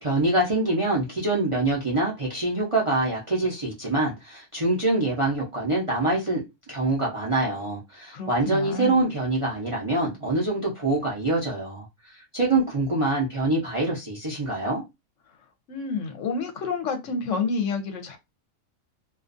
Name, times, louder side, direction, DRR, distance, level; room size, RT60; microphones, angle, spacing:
voice 1, 0.0-11.9 12.3-14.8, right 2 dB, 35° right, 0.5 m, -25 dB
voice 2, 8.1-9.1 15.7-18.2, left 4 dB, 70° left, 0.9 m, -29 dB
2.5 x 2.3 x 2.4 m
omnidirectional pair, 1.4 m